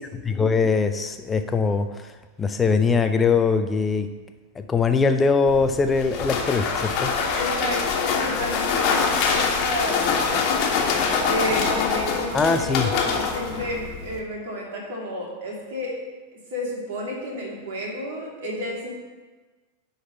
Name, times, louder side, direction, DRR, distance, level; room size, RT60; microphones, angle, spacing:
voice 1, 0.3-2.1 2.4-4.1 4.6-7.1 12.3-12.9, left 5 dB, 15° left, 8 dB, 0.4 m, -21 dB
sound 1, 5.5-14.2, left 5 dB, 40° left, 1.5 m, -24 dB
voice 2, 7.3-10.7 11.2-16.0 16.5-18.9, equal, 55° right, -3 dB, 2.8 m, -31 dB
11.0 x 4.0 x 7.0 m, 1.3 s
figure-of-eight pair, 90°, 0 cm